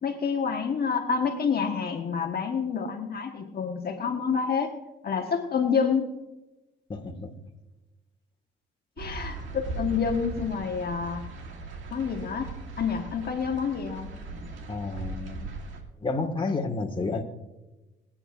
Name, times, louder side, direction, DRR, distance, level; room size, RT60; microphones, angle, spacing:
voice 1, 0.0-4.7 5.0-6.1 9.0-11.2 11.9-14.1, left 6 dB, 50° left, 3 dB, 1.3 m, -28 dB
voice 2, 6.9-7.3 14.7-15.5 16.0-17.2, left 3 dB, 25° left, 2 dB, 1.7 m, -30 dB
sound 1, 9.0-15.8, right 3 dB, 75° right, 2.1 m, -38 dB
24.0 x 8.9 x 2.5 m, 1.1 s
cardioid pair, 90°, 20 cm